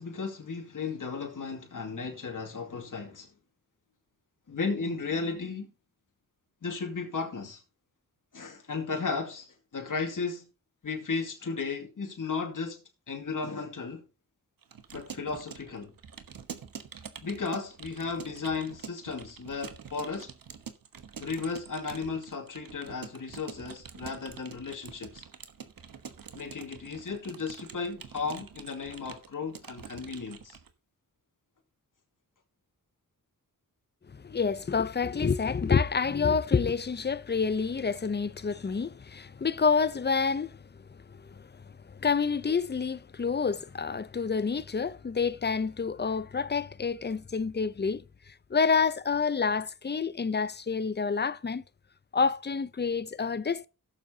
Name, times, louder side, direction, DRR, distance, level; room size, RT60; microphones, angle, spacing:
voice 1, 0.0-3.3 4.5-5.7 6.6-7.6 8.3-10.5 10.8-14.0 14.9-15.9 17.2-20.3 21.2-25.2 26.3-30.6, left 4 dB, 65° left, 2.5 m, -35 dB
Keyboard (musical) / Computer keyboard, 14.6-30.7, right 7 dB, 80° right, 1.3 m, -46 dB
voice 2, 34.1-40.6 40.9-41.6 41.9-48.0 48.5-51.6 52.1-53.7, left 5 dB, 30° left, 0.7 m, -28 dB
17.0 x 7.3 x 2.8 m
wide cardioid pair, 70°, 34 cm